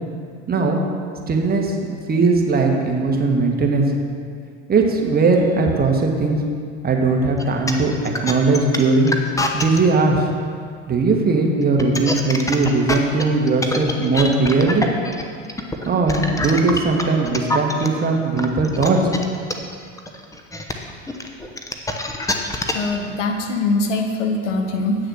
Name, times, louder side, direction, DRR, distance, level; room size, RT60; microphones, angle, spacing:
voice 1, 0.5-0.8 1.3-1.7 2.1-3.9 4.7-6.4 6.8-9.1 9.5-10.2 10.9-14.9 15.8-19.0, right 3 dB, 25° right, 1 dB, 1.5 m, -19 dB
sound 1, 7.3-9.8 11.6-17.9 18.4-22.9, left 2 dB, 10° left, 0.9 m, -25 dB
voice 2, 22.7-25.0, left 3 dB, 85° left, 3 dB, 1.3 m, -22 dB
9.2 x 6.5 x 6.3 m, 2.2 s
hypercardioid pair, 90°, 36 cm